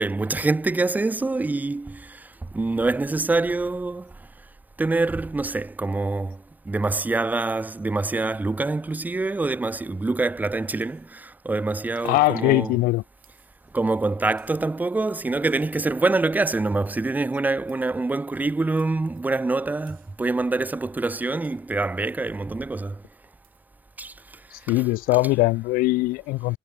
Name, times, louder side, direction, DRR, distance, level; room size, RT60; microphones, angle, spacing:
voice 1, 0.0-2.2 2.5-4.1 4.8-6.4 6.7-12.7 13.7-23.0 24.0-24.1, right 3 dB, 10° right, 0.5 m, -25 dB
sound 1, 10.8-11.1 12.0-12.5 13.2-13.7 14.4-14.7 15.5-16.0 16.5-16.9 17.7-18.0 18.8-19.3 19.9-20.3 21.4-21.7 22.1-22.4 23.4-23.7, right 16 dB, 80° right, 2.6 m, -61 dB
voice 2, 12.0-13.0 24.5-26.6, left 20 dB, 80° left, 0.4 m, -21 dB
cardioid pair, 95°, 15 cm